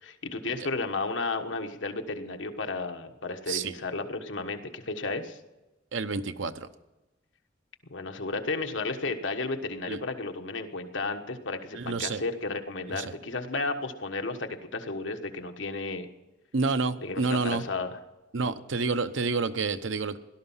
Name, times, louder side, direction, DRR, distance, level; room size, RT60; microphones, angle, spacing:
voice 1, 0.0-5.4 7.9-16.1 17.0-18.0, left 3 dB, 75° left, 1.4 m, -33 dB
voice 2, 5.9-6.7 9.9-10.0 11.7-12.2 12.9-13.1 16.5-17.6 18.3-20.2, right 4 dB, 80° right, 0.9 m, -29 dB
17.5 x 12.5 x 5.7 m
head